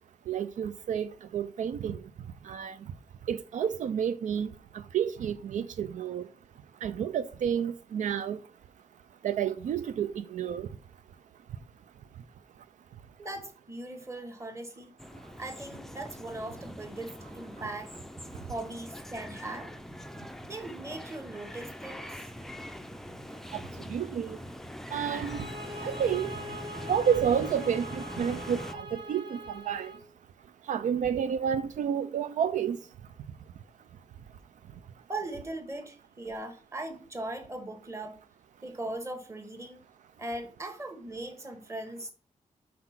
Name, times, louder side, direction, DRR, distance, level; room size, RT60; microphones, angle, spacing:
voice 1, 0.3-2.0 2.4-2.8 3.3-6.2 6.8-8.4 9.2-10.7 23.5-23.6 23.9-24.4 24.9-25.5 25.8-26.3 26.9-29.9 30.7-32.8, right 8 dB, 75° right, 0.4 m, -30 dB
voice 2, 13.2-14.9 15.4-17.9 18.5-19.7 20.4-22.3 35.1-38.2 38.6-39.8 40.2-42.1, right 2 dB, 20° right, 1.4 m, -39 dB
sound 1, 15.0-28.7, equal, 5° left, 0.4 m, -43 dB
sound 2, 25.1-30.1, equal, 40° right, 1.1 m, -42 dB
5.8 x 4.7 x 5.8 m
wide cardioid pair, 145°, 13 cm